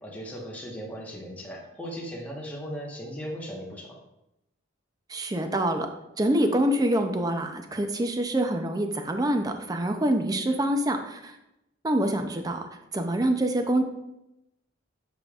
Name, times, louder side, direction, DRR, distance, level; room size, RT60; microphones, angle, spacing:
voice 1, 0.0-4.0, equal, 10° left, -3 dB, 1.2 m, -37 dB
voice 2, 5.1-5.9 6.2-11.4 11.8-13.8, right 1 dB, 20° right, 6 dB, 0.5 m, -26 dB
8.1 x 5.1 x 2.4 m, 0.90 s
head